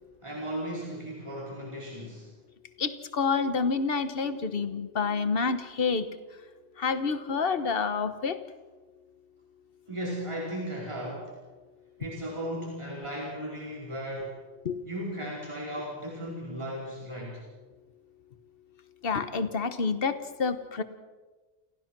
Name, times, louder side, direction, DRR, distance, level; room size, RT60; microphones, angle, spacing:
voice 1, 0.2-2.3 9.9-11.4 12.0-14.3 14.8-17.4, equal, 25° right, -4 dB, 4.7 m, -36 dB
voice 2, 2.8-6.0 6.8-8.4 14.6-14.8 19.0-20.8, left 5 dB, 60° left, 11 dB, 1.4 m, -28 dB
29.5 x 15.5 x 6.1 m, 1.3 s
omnidirectional pair, 1.1 m